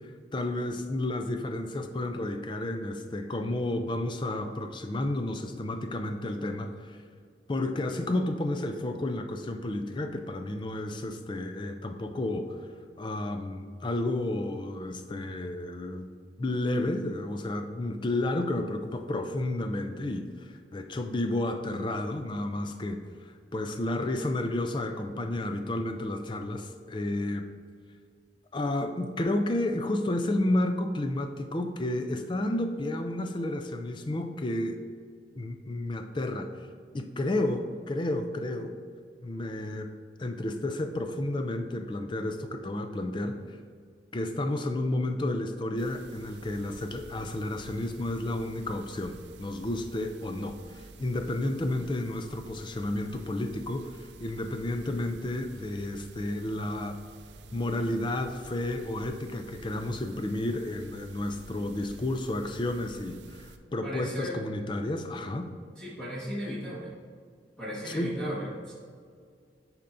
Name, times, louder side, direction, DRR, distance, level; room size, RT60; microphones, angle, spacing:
voice 1, 0.3-7.0 7.5-12.5 13.0-16.1 16.4-20.3 20.7-23.0 23.5-27.5 28.5-34.8 35.4-36.5 36.9-38.8 39.2-39.9 40.2-43.4 44.1-57.0 57.5-65.5 67.8-68.2, left 1 dB, 25° left, 6 dB, 0.4 m, -31 dB
sound 1, 45.8-63.6, right 3 dB, 70° right, 0.5 m, -50 dB
voice 2, 63.8-64.4 65.8-66.9 67.6-68.7, equal, 5° left, -10 dB, 1.5 m, -36 dB
10.5 x 4.4 x 2.6 m, 2.1 s
head